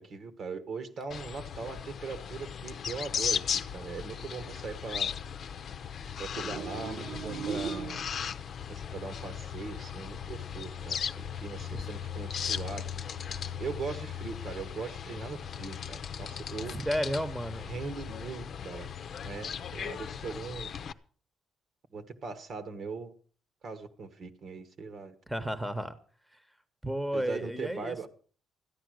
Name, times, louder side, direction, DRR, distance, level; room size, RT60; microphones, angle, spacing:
voice 1, 0.0-3.4 3.7-5.1 6.2-8.0 8.7-11.0 11.4-12.9 13.6-16.8 17.6-18.9 19.2-20.7 21.9-23.1 23.6-25.1 27.1-28.1, right 4 dB, 60° right, 10 dB, 1.6 m, -40 dB
sound 1, 1.1-20.9, left 8 dB, 55° left, 0.7 m, -37 dB
sound 2, 6.4-8.4, right 6 dB, 85° right, 2.2 m, -38 dB
voice 2, 16.7-17.6 25.3-26.0 26.3-26.4 26.8-28.1, equal, 5° right, 11 dB, 1.2 m, -33 dB
14.0 x 10.0 x 6.4 m, 0.43 s
cardioid pair, 90°, 0 cm